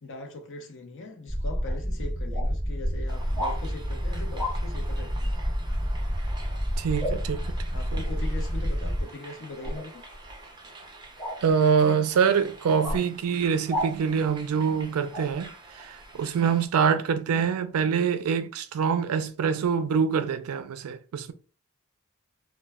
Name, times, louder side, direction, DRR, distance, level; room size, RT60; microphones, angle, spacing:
voice 1, 0.0-5.3 7.7-10.0, left 2 dB, 60° left, 0.6 m, -40 dB
sound 1, 1.3-9.0, equal, 35° left, 1.3 m, -29 dB
sound 2, 1.7-1.8 2.3-2.5 3.4-3.6 4.3-4.6 7.0-7.2 9.6-9.8 11.2-11.4 12.8-13.0 13.7-13.9 15.1-15.3, equal, ahead, 0.9 m, -30 dB
sound 3, 3.1-16.7, right 2 dB, 20° right, 0.5 m, -47 dB
voice 2, 6.8-7.5 7.9-8.0 11.4-21.3, right 6 dB, 70° right, 0.4 m, -25 dB
2.1 x 2.1 x 3.4 m
head